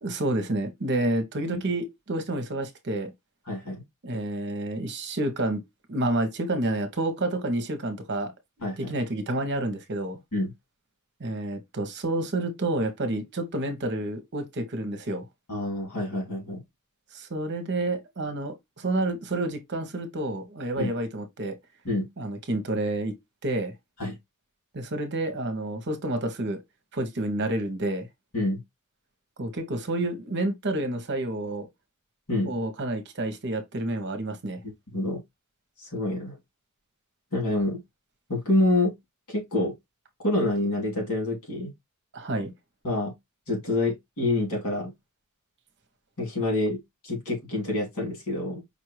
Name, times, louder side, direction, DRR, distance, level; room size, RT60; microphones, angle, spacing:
voice 1, 0.0-3.1 4.0-5.6 5.9-8.3 8.8-10.2 11.2-15.3 17.1-21.5 22.2-23.1 23.4-23.7 24.7-26.6 26.9-28.1 29.4-31.7 32.4-34.6 42.1-42.5, right 1 dB, 55° right, 1.0 m, -29 dB
voice 2, 3.5-3.8 8.6-8.9 10.3-10.5 15.5-16.6 20.8-20.9 21.8-22.1 24.0-24.2 28.3-28.6 32.3-32.5 34.6-35.2 35.8-36.4 37.3-37.8 38.3-38.9 39.3-39.7 40.2-41.7 42.8-43.1 43.5-44.9 46.2-48.6, left 2 dB, 75° left, 2.8 m, -27 dB
5.3 x 2.6 x 3.0 m
head